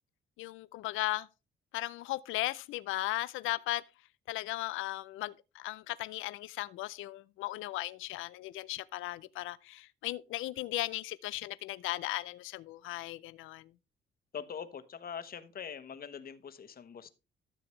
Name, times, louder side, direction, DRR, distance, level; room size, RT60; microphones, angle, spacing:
voice 1, 0.4-1.3 1.7-3.8 4.3-13.6, left 17 dB, 85° left, 0.4 m, -37 dB
voice 2, 14.3-17.1, left 7 dB, 50° left, 1.2 m, -43 dB
13.0 x 7.0 x 3.2 m
cardioid pair, 90°, 20 cm